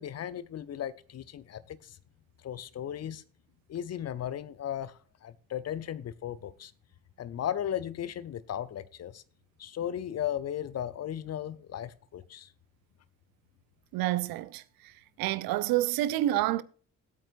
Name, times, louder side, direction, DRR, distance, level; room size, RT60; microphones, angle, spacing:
voice 1, 0.0-2.0 2.4-3.2 3.7-6.7 7.2-9.2 9.6-12.5, left 10 dB, 35° left, 0.7 m, -36 dB
voice 2, 13.9-14.9 15.2-16.6, right 14 dB, 55° right, 0.6 m, -28 dB
17.5 x 8.7 x 2.5 m
figure-of-eight pair, 40°, 44 cm